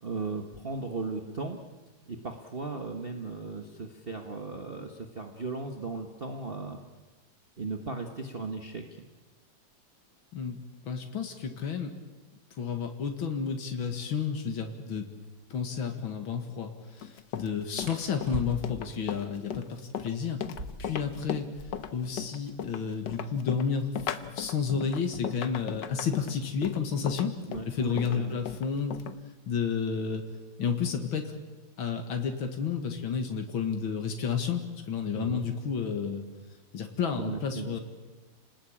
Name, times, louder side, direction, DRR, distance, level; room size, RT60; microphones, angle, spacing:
voice 1, 0.0-1.6 2.1-6.8 7.6-8.8 27.4-28.4 35.1-35.5 37.2-37.8, right 3 dB, 30° right, 4 dB, 1.6 m, -36 dB
voice 2, 10.8-11.9 12.6-15.1 15.5-16.7 17.0-20.4 20.8-21.5 21.9-23.9 24.3-27.3 27.7-29.0 29.5-30.2 30.6-31.3 31.8-34.6 34.9-36.2 36.7-37.8, left 6 dB, 90° left, 5 dB, 2.6 m, -31 dB
sound 1, 15.1-15.4 17.8-18.9 20.4-22.0 22.3-22.4 22.6-23.2 23.8-26.4 27.4-27.7 28.1-28.6 28.9-29.7, right 1 dB, 45° right, 5.0 m, -43 dB
Run, 17.0-29.1, left 8 dB, 65° left, 1.7 m, -37 dB
30.0 x 20.0 x 8.8 m, 1.3 s
omnidirectional pair, 2.2 m